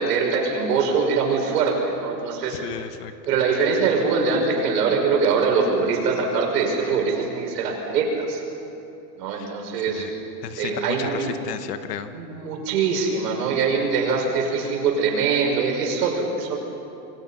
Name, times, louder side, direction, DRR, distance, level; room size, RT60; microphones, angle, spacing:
voice 1, 0.0-2.6 3.3-8.4 9.2-10.1 10.6-11.3 12.1-16.6, right 5 dB, 70° right, 1 dB, 5.7 m, -23 dB
voice 2, 2.5-3.4 9.3-10.1 10.4-12.1, left 8 dB, 70° left, 9 dB, 1.7 m, -34 dB
28.5 x 21.5 x 5.7 m, 2.8 s
supercardioid pair, 175°, 50 cm